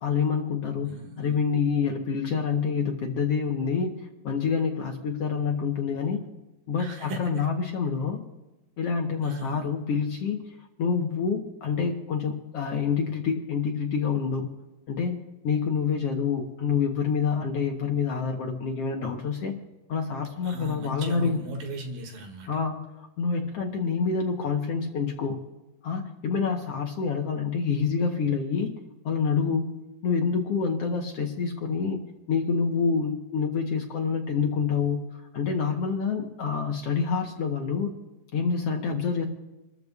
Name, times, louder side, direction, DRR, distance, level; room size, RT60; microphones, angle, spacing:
voice 1, 0.0-0.9 1.2-6.2 6.7-8.2 8.8-10.5 10.8-14.5 14.9-15.2 15.4-19.5 19.9-21.4 22.5-25.4 25.8-28.7 29.1-29.8 30.0-32.0 32.3-37.9 38.3-39.3, left 5 dB, 65° left, 2 dB, 1.6 m, -27 dB
voice 2, 0.9-1.3 6.8-7.5 9.2-9.7 20.4-22.5, right 1 dB, 90° right, 3 dB, 3.9 m, -37 dB
28.5 x 13.5 x 2.4 m, 1.1 s
omnidirectional pair, 3.9 m